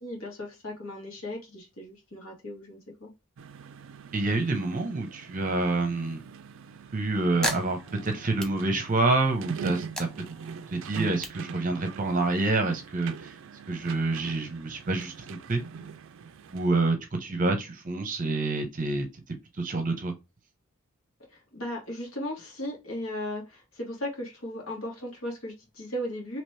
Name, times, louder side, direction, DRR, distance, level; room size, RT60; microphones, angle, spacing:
voice 1, 0.0-3.1 21.3-26.4, left 1 dB, 65° left, 1.6 m, -36 dB
sound 1, 3.4-16.7, right 6 dB, 60° right, 0.4 m, -42 dB
voice 2, 4.1-6.2 6.9-10.1 10.7-13.3 13.7-15.6 16.5-19.1 19.6-20.1, right 2 dB, 35° right, 0.7 m, -27 dB
sound 2, 6.7-9.3 9.6-12.3, equal, 5° left, 0.4 m, -37 dB
3.0 x 2.9 x 3.2 m
head